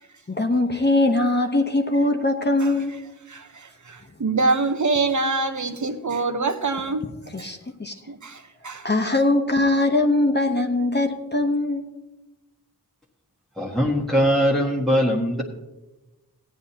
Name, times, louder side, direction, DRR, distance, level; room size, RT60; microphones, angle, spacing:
voice 1, 0.3-2.9 7.3-7.9 8.8-11.9, left 2 dB, 25° left, 1.0 m, -21 dB
voice 2, 3.3-7.0 7.4-7.5 8.1-8.9, right 3 dB, 50° right, 1.0 m, -25 dB
voice 3, 13.6-15.4, equal, ahead, 1.5 m, -21 dB
15.5 x 9.6 x 2.9 m
cardioid pair, 45°, 38 cm